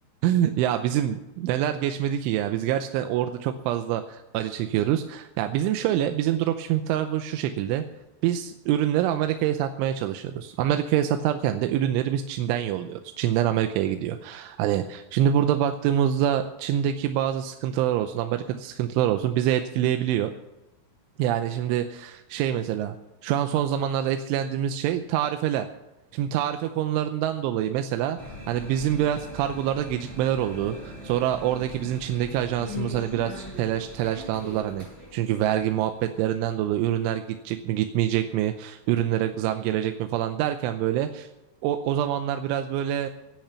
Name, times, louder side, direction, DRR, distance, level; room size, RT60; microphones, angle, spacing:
voice 1, 0.2-7.8 8.2-20.3 21.2-23.0 23.2-25.7 26.1-28.2 28.5-34.9 35.1-41.3 41.6-43.1, right 11 dB, 80° right, 7 dB, 3.1 m, -26 dB
sound 1, 28.2-36.8, left 2 dB, 5° left, 5.1 m, -41 dB
17.0 x 9.1 x 5.7 m, 1.0 s
omnidirectional pair, 5.6 m